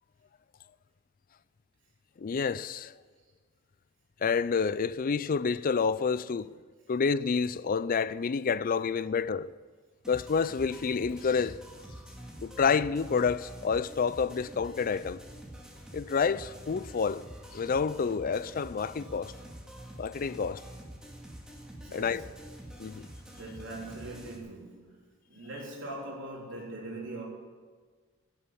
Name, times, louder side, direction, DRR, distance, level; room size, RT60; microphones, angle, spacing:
voice 1, 2.2-2.9 4.2-6.5 6.9-9.5 10.1-11.6 12.4-15.2 15.9-17.2 17.5-19.3 20.0-20.6 21.9-22.2 22.8-23.1, left 5 dB, 45° left, 0.4 m, -28 dB
sound 1, 10.0-24.4, right 1 dB, 5° right, 2.1 m, -47 dB
voice 2, 21.7-22.3 23.3-25.0 25.3-27.2, right 2 dB, 65° right, 3.6 m, -41 dB
17.0 x 7.2 x 8.7 m
head